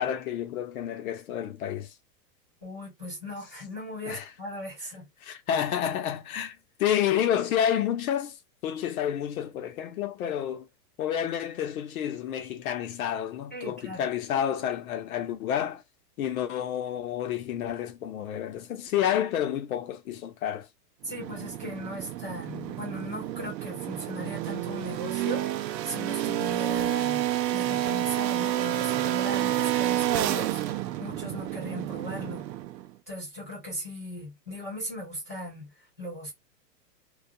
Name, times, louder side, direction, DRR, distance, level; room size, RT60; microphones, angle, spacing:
voice 1, 0.0-1.9 4.1-4.3 5.2-8.4 8.6-10.7 11.0-15.8 16.2-20.7, left 10 dB, 60° left, 0.8 m, -29 dB
voice 2, 2.6-5.1 13.5-14.1 21.0-32.5 33.1-36.3, left 1 dB, 10° left, 0.4 m, -38 dB
sound 1, 21.1-32.9, right 13 dB, 80° right, 0.6 m, -29 dB
2.3 x 2.2 x 2.6 m
supercardioid pair, 165°, 50 cm